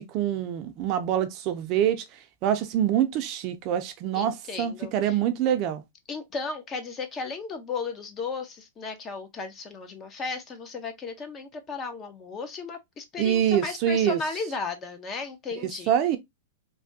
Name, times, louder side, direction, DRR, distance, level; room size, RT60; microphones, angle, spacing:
voice 1, 0.0-2.0 2.4-5.8 13.2-14.2 15.9-16.2, right 10 dB, 40° right, 0.5 m, -25 dB
voice 2, 4.1-5.2 6.1-15.9, left 4 dB, 25° left, 0.6 m, -35 dB
3.3 x 2.2 x 2.6 m
hypercardioid pair, 140°, 0 cm